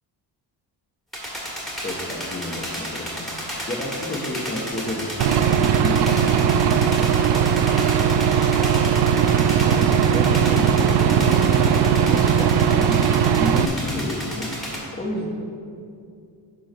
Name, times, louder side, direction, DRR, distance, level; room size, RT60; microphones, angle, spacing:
sound 1, 1.1-14.8, equal, ahead, 2.0 m, -32 dB
voice 1, 1.8-3.3 3.7-7.1 7.4-7.8 8.0-8.3 8.5-8.8 9.7-13.0 13.3-14.5 14.9-15.3, left 1 dB, 25° left, 0 dB, 1.2 m, -31 dB
sound 2, 4.7-10.3, equal, 50° right, 2.2 m, -38 dB
Aircraft / Engine, 5.2-13.7, right 8 dB, 70° right, 0.5 m, -19 dB
10.5 x 3.8 x 6.2 m, 2.5 s
cardioid pair, 130°, 43 cm